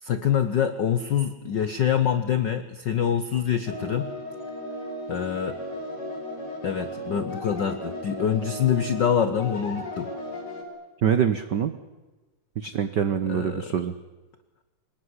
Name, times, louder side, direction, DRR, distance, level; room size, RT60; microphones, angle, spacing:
voice 1, 0.0-4.1 5.1-5.6 6.6-10.1 13.2-13.7, left 8 dB, 80° left, 11 dB, 0.9 m, -25 dB
sound 1, 3.7-10.6, left 1 dB, 35° left, 4.3 m, -36 dB
voice 2, 11.0-11.7 12.6-13.9, right 8 dB, 80° right, 11 dB, 0.9 m, -24 dB
24.0 x 20.0 x 9.7 m, 1.2 s
omnidirectional pair, 3.4 m